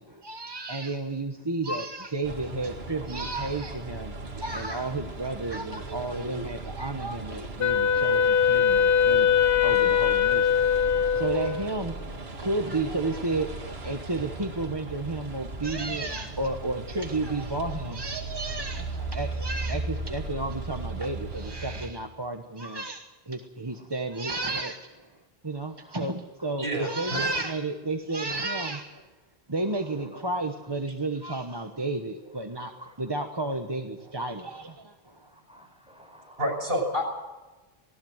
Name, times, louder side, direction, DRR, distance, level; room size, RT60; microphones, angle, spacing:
voice 1, 0.0-9.3 9.6-10.5 11.0-12.0 12.4-25.1 25.4-28.9 29.5-32.7 33.0-35.3, right 2 dB, 25° right, 4 dB, 1.2 m, -32 dB
sound 1, 2.2-21.9, right 2 dB, 85° right, 2.1 m, -37 dB
voice 2, 3.5-3.8 4.8-5.0 23.7-24.3 25.4-26.1 26.4-26.5 26.8-27.0 28.3-28.7 29.6-30.1 30.9-31.6 32.4-32.9 33.5-33.6 34.4-34.7 35.2-36.6, equal, 5° right, 2 dB, 5.1 m, -54 dB
Wind instrument woodwind instrument, 7.6-11.9, left 7 dB, 70° left, 1.3 m, -22 dB
voice 3, 26.6-27.2 28.3-28.4 29.9-30.2 32.2-32.4 34.1-34.2 36.4-37.1, equal, 65° right, 3 dB, 6.0 m, -30 dB
19.5 x 18.0 x 7.9 m, 1.2 s
omnidirectional pair, 1.0 m